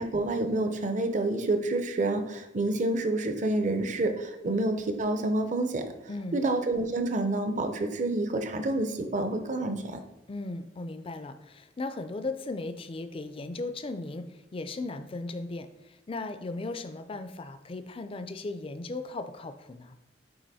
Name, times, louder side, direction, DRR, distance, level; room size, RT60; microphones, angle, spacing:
voice 1, 0.0-5.8 6.3-10.0, right 2 dB, 45° right, 7 dB, 0.6 m, -28 dB
voice 2, 6.1-6.4 10.3-14.3 14.5-20.0, left 2 dB, 30° left, 9 dB, 0.4 m, -37 dB
8.6 x 2.9 x 4.1 m, 0.95 s
head